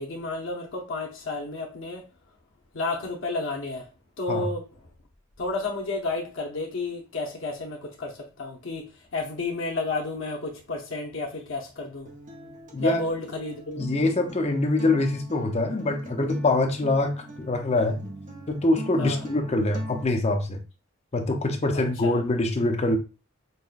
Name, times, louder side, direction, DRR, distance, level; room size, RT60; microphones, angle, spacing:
voice 1, 0.0-2.0 2.7-3.9 4.2-4.6 5.4-8.8 9.1-12.1 12.8-13.8 19.0-19.2 21.7-22.2, left 2 dB, 65° left, 0.7 m, -31 dB
Acoustic guitar, 12.1-20.0, right 2 dB, 40° right, 0.7 m, -42 dB
voice 2, 13.8-18.0 18.5-20.6 21.1-23.0, left 2 dB, 30° left, 0.6 m, -24 dB
5.4 x 2.2 x 2.4 m
head